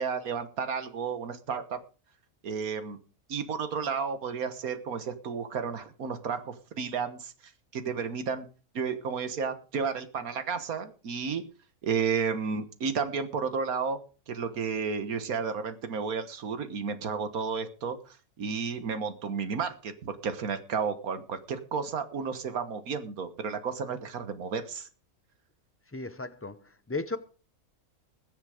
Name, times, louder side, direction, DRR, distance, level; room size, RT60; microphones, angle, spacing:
voice 1, 0.0-1.8 2.4-3.0 3.3-7.3 7.7-8.5 8.7-11.4 11.8-14.0 14.3-24.9, right 5 dB, 85° right, 1.7 m, -32 dB
voice 2, 25.9-27.2, left 3 dB, 20° left, 0.4 m, -35 dB
21.0 x 7.3 x 4.9 m
omnidirectional pair, 1.5 m